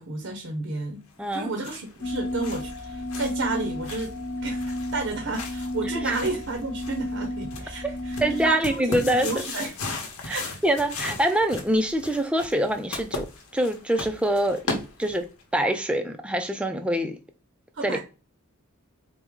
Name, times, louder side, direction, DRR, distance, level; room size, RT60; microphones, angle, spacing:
voice 1, 0.0-1.0 1.3-9.7 10.3-10.6 17.7-18.0, right 3 dB, 60° right, 0.6 m, -32 dB
sound 1, 1.2-15.4, left 3 dB, 85° left, 0.9 m, -38 dB
voice 2, 1.2-1.5 6.0-6.2 7.8-7.9 8.2-9.3 10.2-13.3 13.5-15.2 15.5-17.2 17.8-18.0, right 1 dB, 5° right, 0.3 m, -25 dB
sound 2, 2.0-8.5, left 1 dB, 45° left, 1.0 m, -32 dB
4.4 x 2.1 x 3.5 m
head